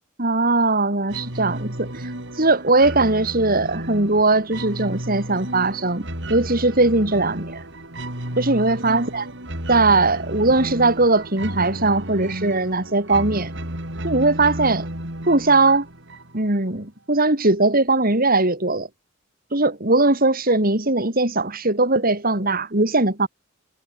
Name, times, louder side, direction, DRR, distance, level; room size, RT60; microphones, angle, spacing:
voice 1, 0.2-6.0 6.3-7.6 8.4-9.3 9.7-13.5 14.0-14.9 15.3-15.9 16.3-18.9 19.5-23.3, right 2 dB, 45° right, 3.9 m, -20 dB
sound 1, 1.1-16.6, right 1 dB, 60° right, 5.2 m, -33 dB
head